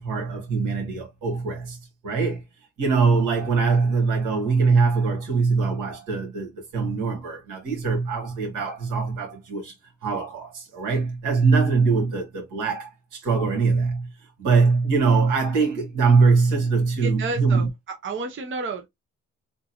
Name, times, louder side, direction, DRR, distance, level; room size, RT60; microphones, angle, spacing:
voice 1, 0.0-1.8 2.0-2.4 2.8-9.7 10.0-14.1 14.4-17.7, right 4 dB, 90° right, 2.0 m, -22 dB
voice 2, 17.0-18.9, right 3 dB, 40° right, 0.8 m, -31 dB
3.7 x 2.5 x 2.9 m
cardioid pair, 90°, 30 cm